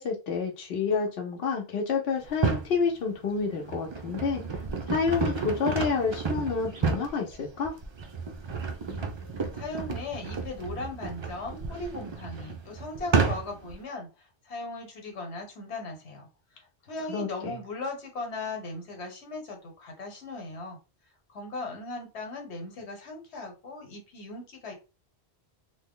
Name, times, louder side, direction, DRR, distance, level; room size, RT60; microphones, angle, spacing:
voice 1, 0.0-7.7 17.1-17.5, left 5 dB, 70° left, 0 dB, 0.9 m, -29 dB
Throwing trash away Opening and closing lid and pulling away, 2.2-2.7 3.4-13.7, right 5 dB, 50° right, 0.3 m, -31 dB
voice 2, 9.5-16.3 16.5-20.8 21.3-24.7, left 2 dB, 90° left, 2 dB, 1.3 m, -38 dB
3.0 x 2.1 x 3.6 m, 0.30 s
omnidirectional pair, 1.1 m